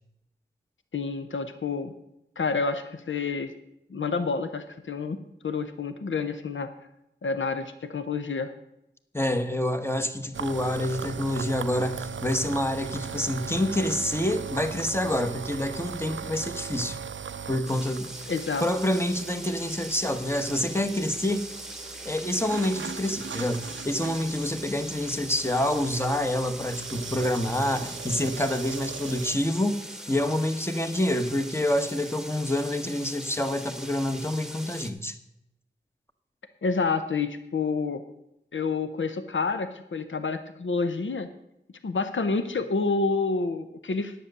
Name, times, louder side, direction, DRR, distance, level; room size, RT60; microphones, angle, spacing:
voice 1, 0.9-1.9 2.4-3.5 3.9-5.2 5.4-6.7 7.2-8.5 18.3-18.6 36.6-38.0 38.5-41.3 41.8-44.1, left 4 dB, 80° left, 9 dB, 0.7 m, -28 dB
voice 2, 9.1-17.0 17.5-18.1 18.6-21.5 22.0-29.8 30.1-35.2, left 1 dB, 10° left, 7 dB, 1.0 m, -27 dB
sound 1, 10.3-29.4, right 7 dB, 85° right, 0.5 m, -39 dB
sound 2, 17.6-34.9, right 1 dB, 5° right, 1.3 m, -41 dB
10.0 x 7.7 x 6.6 m, 0.83 s
wide cardioid pair, 60°, 19 cm